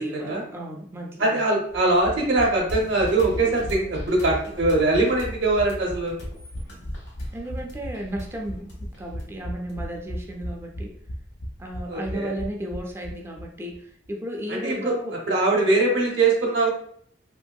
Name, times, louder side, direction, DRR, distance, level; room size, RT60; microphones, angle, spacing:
voice 1, 0.0-1.4 7.3-11.0 11.6-15.2, right 1 dB, 15° right, 0 dB, 0.4 m, -34 dB
voice 2, 1.2-6.2 11.9-12.3 14.5-14.9 15.3-16.7, right 2 dB, 75° right, -2 dB, 0.6 m, -22 dB
sound 1, 1.7-13.5 13.7-13.8 14.0-14.1, equal, 45° left, 0.4 m, -36 dB
sound 2, 2.7-10.2, left 1 dB, 70° left, 1.2 m, -40 dB
2.9 x 2.6 x 2.3 m, 0.62 s
head